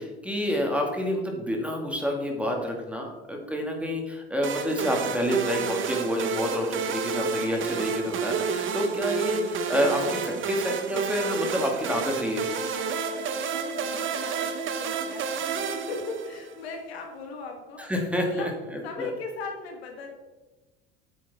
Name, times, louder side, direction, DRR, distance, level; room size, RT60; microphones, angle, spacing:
voice 1, 0.0-12.5 17.9-18.5 19.0-19.1, equal, 5° right, 1 dB, 2.2 m, -28 dB
sound 1, 4.4-16.6, right 6 dB, 40° right, 1.0 m, -30 dB
voice 2, 7.5-7.8 13.5-17.8 18.2-18.5 18.8-20.1, left 4 dB, 80° left, 3 dB, 1.7 m, -38 dB
8.8 x 7.5 x 3.6 m, 1.2 s
hypercardioid pair, 75°, 31 cm